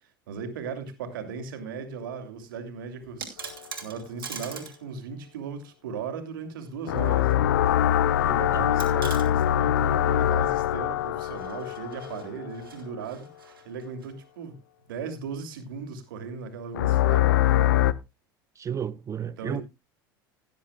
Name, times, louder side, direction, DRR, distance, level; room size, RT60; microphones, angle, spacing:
voice 1, 0.3-3.4 3.8-7.4 8.2-13.3 13.6-14.6 14.9-17.3 19.4-19.6, right 5 dB, 75° right, 2.7 m, -37 dB
sound 1, 3.0-4.8 5.1-5.2 6.6-7.4 7.7-7.8 8.8-9.3 11.2-14.1, right 6 dB, 90° right, 2.6 m, -42 dB
sound 2, 6.9-12.7 16.7-17.9, left 11 dB, 75° left, 0.6 m, -23 dB
voice 2, 18.6-19.6, right 8 dB, 25° right, 0.5 m, -32 dB
17.0 x 10.5 x 2.3 m
hypercardioid pair, 80°, 11 cm